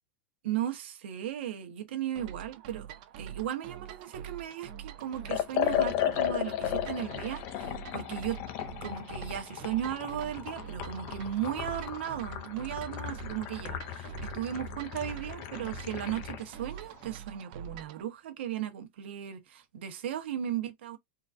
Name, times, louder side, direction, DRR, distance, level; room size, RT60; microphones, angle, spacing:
voice 1, 0.4-2.9 3.2-8.4 8.8-21.0, right 11 dB, 80° right, 0.9 m, -36 dB
sound 1, 2.2-18.0, right 9 dB, 45° right, 0.5 m, -45 dB
Liquid, 5.2-16.5, left 11 dB, 30° left, 0.3 m, -35 dB
3.7 x 2.4 x 2.4 m
supercardioid pair, 180°, 6 cm